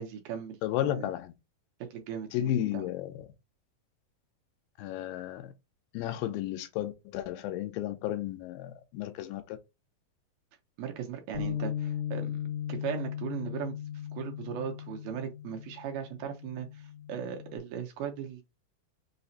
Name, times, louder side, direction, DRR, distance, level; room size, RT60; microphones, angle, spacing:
voice 1, 0.0-1.1 1.9-2.9 10.8-12.4 12.7-13.8 14.1-18.4, right 8 dB, 80° right, 2.2 m, -38 dB
voice 2, 0.6-1.3 2.3-3.3 4.8-5.5 5.9-9.6, left 12 dB, 90° left, 2.3 m, -33 dB
Bass guitar, 11.3-17.6, left 10 dB, 55° left, 0.7 m, -37 dB
5.6 x 2.0 x 2.6 m
omnidirectional pair, 4.0 m